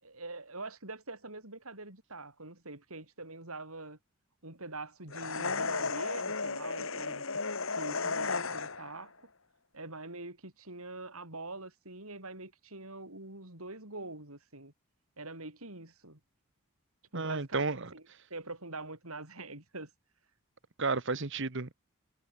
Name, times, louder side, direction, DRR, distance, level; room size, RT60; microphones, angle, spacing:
voice 1, 0.0-4.0 4.4-7.2 7.7-9.1 9.7-14.7 15.2-16.2 17.1-18.0 18.3-19.9, right 2 dB, 75° right, 7.0 m, -44 dB
sound 1, 5.1-9.0, left 4 dB, 65° left, 2.1 m, -34 dB
voice 2, 17.1-17.9 20.8-21.7, right 3 dB, 55° right, 1.3 m, -32 dB
head